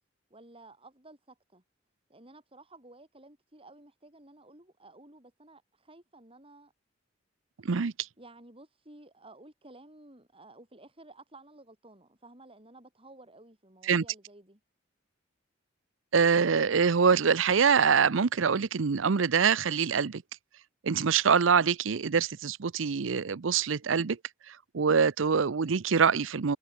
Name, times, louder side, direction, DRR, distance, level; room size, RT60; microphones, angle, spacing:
voice 1, 0.3-1.6 2.1-6.7 7.6-7.7 8.2-14.6, right 2 dB, 30° right, 7.5 m, -54 dB
voice 2, 16.1-20.2 20.8-24.2 24.7-26.6, right 6 dB, 85° right, 0.6 m, -24 dB
head